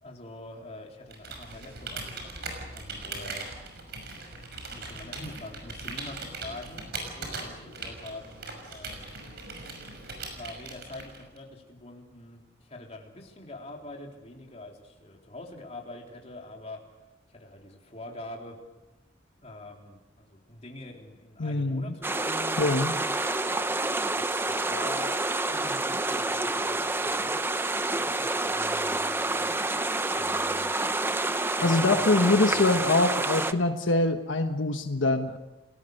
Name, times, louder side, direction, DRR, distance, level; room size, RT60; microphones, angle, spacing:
voice 1, 0.0-3.9 4.6-9.3 10.2-16.8 17.3-18.6 19.4-22.8 23.4-23.6 24.1-25.2 25.4-27.4 28.0-29.8 30.1-30.7 31.6-32.9, left 2 dB, 35° left, 0 dB, 3.7 m, -45 dB
Computer keyboard, 1.1-11.4, right 3 dB, 55° right, 6.1 m, -40 dB
voice 2, 21.4-21.9 22.6-23.0 31.6-35.4, left 2 dB, 80° left, 6 dB, 1.3 m, -24 dB
sound 1, 22.0-33.5, right 2 dB, 10° right, 0.7 m, -28 dB
30.0 x 19.0 x 6.6 m, 1.0 s
head